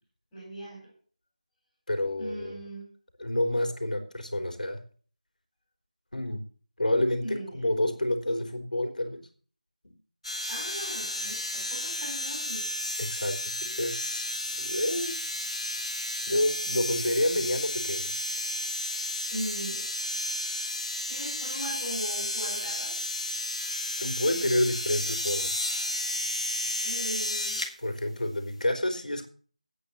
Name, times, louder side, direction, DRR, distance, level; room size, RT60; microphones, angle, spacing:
voice 1, 0.3-0.9 2.2-2.9 7.2-7.5 10.5-12.7 19.3-19.9 21.1-22.9 26.8-27.6, equal, 5° left, -10 dB, 5.0 m, -38 dB
voice 2, 1.9-2.6 3.2-4.8 6.1-6.4 6.8-9.3 9.8-9.9 13.0-14.3 14.6-15.2 16.3-18.1 24.0-25.7 27.8-29.3, left 1 dB, 85° left, 5 dB, 3.8 m, -29 dB
sound 1, 10.2-27.7 28.6-28.7, left 1 dB, 50° left, 2.9 m, -32 dB
10.0 x 8.9 x 7.2 m, 0.43 s
figure-of-eight pair, 180°, 4 cm